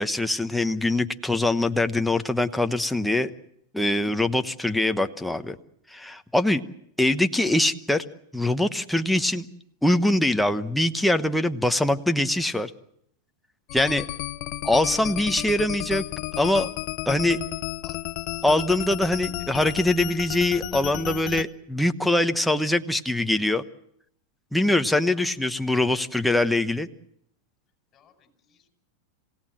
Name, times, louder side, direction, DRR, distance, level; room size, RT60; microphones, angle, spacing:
voice 1, 0.0-3.3 3.7-5.6 5.9-6.6 7.0-8.0 8.3-9.4 9.8-12.7 13.7-14.1 14.6-16.0 16.4-16.7 17.1-17.4 17.8-17.9 18.4-23.6 24.5-26.9, left 1 dB, 5° left, 7 dB, 1.0 m, -23 dB
sound 1, 13.7-21.4, left 18 dB, 50° left, 1.0 m, -33 dB
voice 2, 27.9-28.7, left 8 dB, 30° left, 6 dB, 5.3 m, -61 dB
27.0 x 17.0 x 7.6 m, 0.70 s
supercardioid pair, 135°, 0 cm